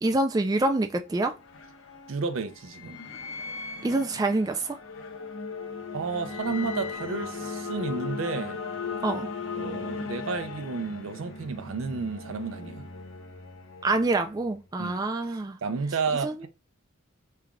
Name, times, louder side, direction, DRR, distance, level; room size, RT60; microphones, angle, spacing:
voice 1, 0.0-1.3 3.8-4.8 9.0-9.3 13.8-15.6 16.2-16.5, right 2 dB, 20° right, 0.3 m, -26 dB
sound 1, 0.9-14.6, left 4 dB, 65° left, 0.7 m, -37 dB
voice 2, 2.1-3.0 5.9-8.6 9.5-12.9 14.8-15.1 15.6-16.5, right 4 dB, 75° right, 0.5 m, -32 dB
3.2 x 2.3 x 3.6 m
head